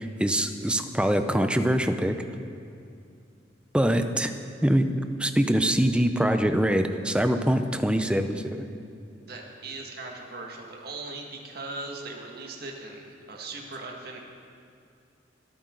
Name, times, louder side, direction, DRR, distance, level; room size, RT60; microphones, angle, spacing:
voice 1, 0.0-2.2 3.7-4.3 4.6-4.9 5.2-8.7, right 1 dB, 5° right, 7 dB, 0.6 m, -24 dB
voice 2, 9.3-14.2, right 3 dB, 55° right, 0 dB, 1.9 m, -39 dB
25.0 x 8.8 x 3.9 m, 2.5 s
head